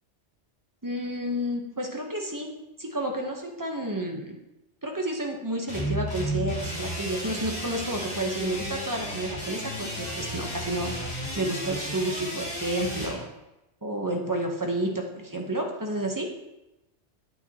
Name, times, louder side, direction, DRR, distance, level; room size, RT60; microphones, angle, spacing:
voice 1, 0.8-2.5 2.8-4.4 4.8-10.9 11.3-13.2 13.8-16.3, right 1 dB, 20° right, 2 dB, 1.0 m, -30 dB
sound 1, 5.7-13.1, equal, 50° left, 2.8 m, -33 dB
9.0 x 8.4 x 3.0 m, 0.96 s
omnidirectional pair, 1.2 m